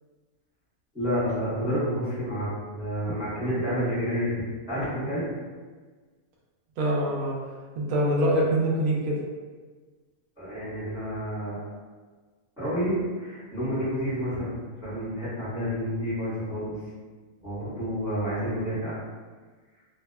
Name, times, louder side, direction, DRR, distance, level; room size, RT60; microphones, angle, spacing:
voice 1, 0.9-5.3 10.4-11.7 12.6-16.8 17.4-18.9, equal, 5° right, -15 dB, 0.7 m, -29 dB
voice 2, 6.8-7.4 7.7-9.2, right 1 dB, 80° right, -3 dB, 1.0 m, -24 dB
2.7 x 2.1 x 2.2 m, 1.4 s
omnidirectional pair, 1.5 m